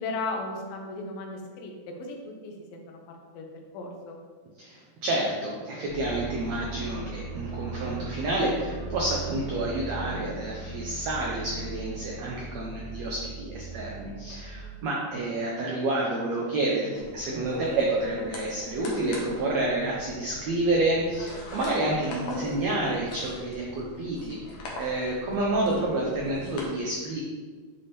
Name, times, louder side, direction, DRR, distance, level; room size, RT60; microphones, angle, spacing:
voice 1, 0.0-3.5 3.7-4.2, left 3 dB, 80° left, 1 dB, 2.6 m, -36 dB
voice 2, 4.6-24.4 24.8-27.2, right 2 dB, 80° right, -3 dB, 1.5 m, -29 dB
sound 1, 5.9-14.6, right 3 dB, 35° right, 0.9 m, -38 dB
sound 2, 16.9-26.6, left 1 dB, 65° left, 1.8 m, -41 dB
8.6 x 3.5 x 4.2 m, 1.5 s
omnidirectional pair, 4.1 m